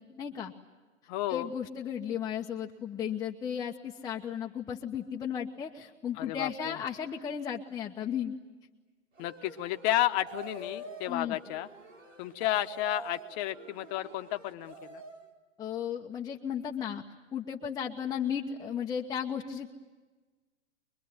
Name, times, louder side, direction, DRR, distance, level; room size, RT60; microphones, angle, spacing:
voice 1, 0.2-0.5 1.3-8.3 11.1-11.4 15.6-17.0 17.3-19.7, left 8 dB, 10° left, 0 dB, 1.0 m, -35 dB
voice 2, 1.1-1.5 6.2-6.8 9.2-11.7 12.2-15.0, left 14 dB, 35° left, 8 dB, 1.2 m, -32 dB
sound 1, 9.2-15.3, right 1 dB, 90° right, 5.3 m, -46 dB
24.5 x 23.0 x 9.7 m, 1.3 s
hypercardioid pair, 130°, 37 cm